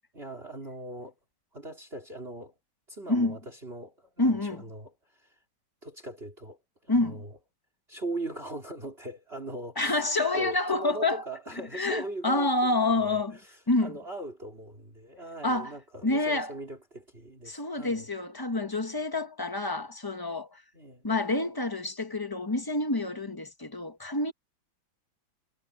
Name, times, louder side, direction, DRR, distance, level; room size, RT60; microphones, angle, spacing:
voice 1, 0.1-1.1 1.5-2.5 2.9-5.4 5.8-7.4 7.9-18.1 20.7-21.1, right 1 dB, 30° right, 4.2 m, -40 dB
voice 2, 4.2-4.6 6.9-7.2 9.8-11.2 11.7-13.4 13.7-13.9 15.4-15.7 16.0-16.5 17.5-20.6 21.0-24.3, left 2 dB, 15° left, 0.9 m, -28 dB
omnidirectional pair, 2.1 m